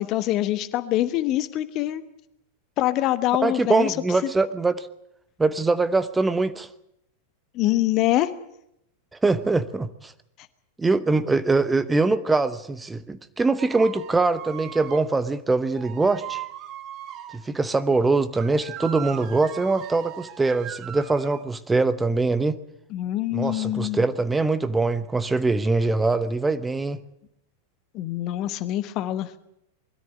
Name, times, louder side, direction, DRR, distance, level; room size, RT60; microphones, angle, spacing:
voice 1, 0.0-2.0 2.8-3.9 4.2-4.3 7.5-8.3 22.9-24.0 27.9-29.3, left 14 dB, 40° left, 14 dB, 1.1 m, -24 dB
voice 2, 3.4-4.9 5.4-6.7 9.2-10.1 10.8-16.4 17.3-22.6 23.3-27.0, right 3 dB, 10° right, 13 dB, 0.9 m, -23 dB
sound 1, 13.6-15.1 15.7-17.4 18.3-21.4, right 11 dB, 35° right, 1.5 m, -39 dB
21.5 x 13.5 x 9.9 m, 0.79 s
figure-of-eight pair, 90°, 0 cm